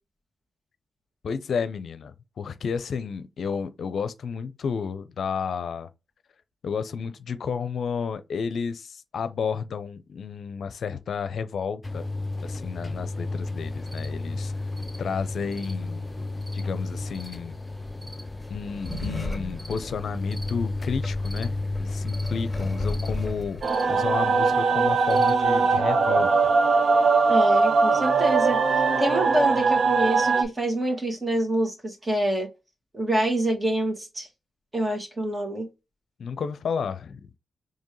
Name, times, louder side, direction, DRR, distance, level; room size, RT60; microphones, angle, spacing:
voice 1, 1.2-5.9 6.6-12.1 12.4-14.5 15.0-16.1 16.5-17.6 18.5-23.6 23.9-26.3 36.2-37.2, left 6 dB, 70° left, 0.5 m, -31 dB
sound 1, 11.8-23.4, left 2 dB, 20° left, 0.6 m, -32 dB
sound 2, 13.6-25.7, left 1 dB, ahead, 2.2 m, -39 dB
sound 3, 23.6-30.4, right 4 dB, 65° right, 0.7 m, -21 dB
voice 2, 27.3-28.6 29.0-32.5 32.9-34.3 34.7-35.7, right 1 dB, 30° right, 2.0 m, -26 dB
4.4 x 3.2 x 3.1 m
cardioid pair, 60°, 0 cm